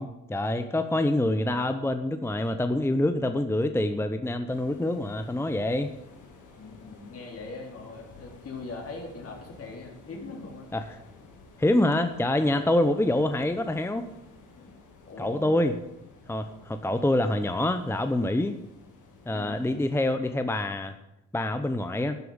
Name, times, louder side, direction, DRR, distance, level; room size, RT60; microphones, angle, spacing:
voice 1, 0.0-5.9 10.7-11.0 11.6-14.1 15.2-15.7 16.3-18.5 19.3-20.9 21.3-22.2, left 1 dB, 10° left, 9 dB, 0.7 m, -26 dB
sound 1, 4.5-20.1, left 3 dB, 85° left, 2.7 m, -53 dB
voice 2, 6.6-10.7 12.4-12.7 14.5-14.7 15.1-15.5 19.3-19.6, left 3 dB, 50° left, 1 dB, 3.7 m, -41 dB
11.5 x 7.8 x 8.7 m, 0.87 s
cardioid pair, 90°, 30 cm